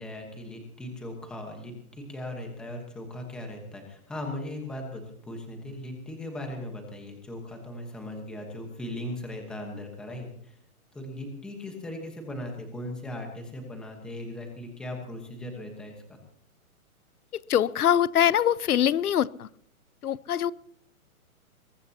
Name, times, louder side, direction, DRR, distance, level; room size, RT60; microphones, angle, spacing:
voice 1, 0.0-10.6 10.9-16.2, left 1 dB, ahead, 2 dB, 1.2 m, -38 dB
voice 2, 17.3-19.5 20.0-20.5, left 10 dB, 85° left, 20 dB, 0.8 m, -23 dB
22.5 x 19.0 x 2.9 m, 0.65 s
hypercardioid pair, 175°, 43 cm